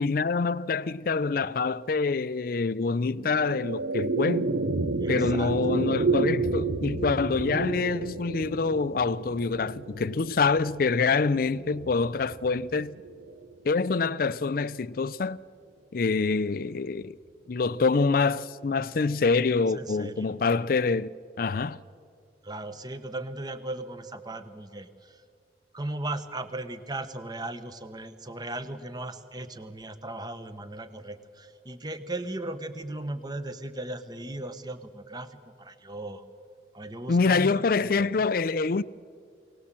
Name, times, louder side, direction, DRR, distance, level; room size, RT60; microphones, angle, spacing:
voice 1, 0.0-4.5 5.1-13.0 13.6-15.4 15.9-17.1 17.5-21.1 21.4-21.8 37.1-38.8, left 4 dB, 50° left, 0.4 m, -26 dB
sound 1, 3.0-13.5, right 3 dB, 90° right, 0.9 m, -31 dB
voice 2, 5.0-5.6 19.7-20.3 22.4-25.2 25.7-36.2 36.7-38.1, right 2 dB, 25° right, 1.1 m, -37 dB
23.5 x 18.0 x 7.5 m
head